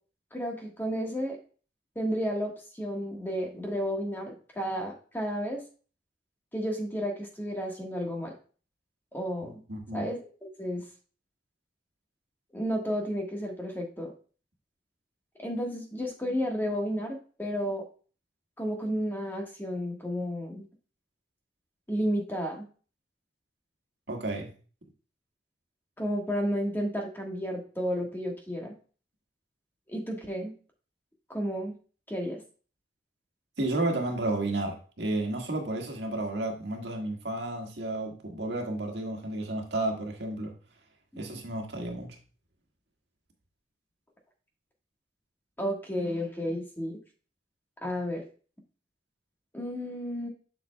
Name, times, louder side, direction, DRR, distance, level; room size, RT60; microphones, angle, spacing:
voice 1, 0.3-1.4 1.9-5.6 6.5-8.3 9.1-9.6 9.9-10.3 10.6-10.8 12.5-14.1 15.4-17.8 18.6-20.7 21.9-22.7 26.0-28.7 29.9-30.5 31.3-31.7 32.1-32.4 41.1-41.2 45.6-47.0 47.8-48.2 49.5-50.3, equal, 10° left, 1.3 m, -32 dB
voice 2, 9.7-10.1 24.1-24.5 33.6-40.5 41.2-42.2, right 2 dB, 75° right, 1.6 m, -32 dB
7.5 x 6.8 x 2.2 m
head